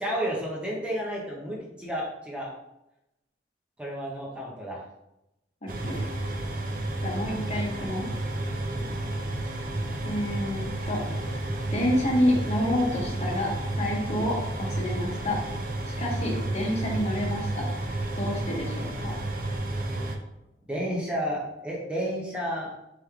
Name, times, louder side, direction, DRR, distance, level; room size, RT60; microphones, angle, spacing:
voice 1, 0.0-2.5 3.8-4.8 8.6-8.9 19.9-20.0 20.7-22.7, equal, 5° right, -4 dB, 0.7 m, -31 dB
voice 2, 5.6-6.1 7.0-8.1 10.1-11.0 11.7-15.4 16.0-17.7 18.1-19.1, left 1 dB, 40° left, -2 dB, 0.9 m, -28 dB
sound 1, 5.7-20.2, right 2 dB, 50° right, 0.6 m, -31 dB
3.4 x 3.1 x 3.6 m, 0.89 s
head